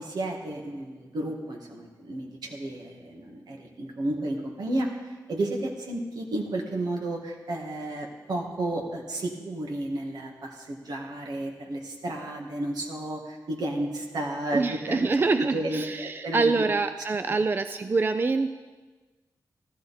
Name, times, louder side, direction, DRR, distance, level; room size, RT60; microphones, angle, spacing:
voice 1, 0.0-16.5, right 1 dB, 80° right, 1 dB, 2.0 m, -32 dB
voice 2, 14.5-18.5, right 3 dB, 30° right, 9 dB, 0.4 m, -25 dB
14.5 x 14.5 x 4.3 m, 1.3 s
wide cardioid pair, 160°, 7 cm